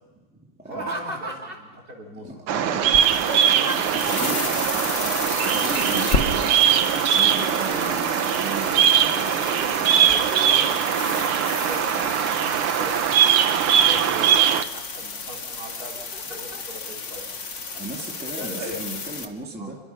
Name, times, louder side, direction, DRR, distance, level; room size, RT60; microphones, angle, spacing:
Laughter, 0.6-1.8 2.7-4.0 5.8-6.2 6.6-8.2 8.7-9.4 9.8-11.1 11.5-12.0 12.5-13.3 13.8-14.6 15.8-16.6 17.1-17.2 17.7-18.0 18.6-18.8, right 2 dB, 25° right, 2.9 m, -36 dB
voice 1, 0.7-2.9 6.0-6.2 9.9-10.9 11.5-13.0 13.5-16.0 16.3-17.3 18.4-19.0 19.6-19.7, equal, 45° right, -1 dB, 4.3 m, -40 dB
voice 2, 2.2-2.9 3.4-5.1 5.4-6.7 7.0-10.1 10.8-10.9 12.0-12.1 13.8-14.3 17.8-19.8, right 1 dB, 5° right, 0 dB, 2.1 m, -36 dB
Bird vocalization bird call bird song, 2.5-14.6, right 9 dB, 90° right, 1.9 m, -21 dB
sound 1, 2.8-19.3, left 4 dB, 40° left, 1.6 m, -32 dB
27.5 x 23.0 x 5.7 m, 1.3 s
omnidirectional pair, 2.3 m